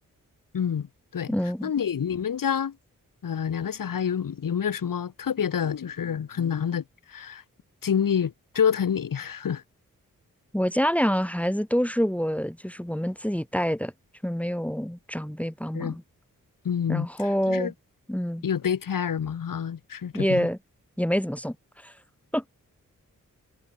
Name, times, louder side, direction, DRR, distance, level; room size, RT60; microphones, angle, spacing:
voice 1, 0.5-0.9 1.1-1.3 1.6-2.8 3.2-6.8 7.1-7.4 7.8-9.6 15.7-16.0 16.6-17.1 17.5-17.7 18.4-20.5, left 8 dB, 75° left, 1.9 m, -27 dB
voice 2, 1.3-1.7 10.5-13.9 14.2-16.0 16.9-17.7 18.1-18.4 20.1-20.6 21.0-21.9 22.3-22.4, equal, 5° left, 2.9 m, -26 dB
cardioid pair, 55°, 34 cm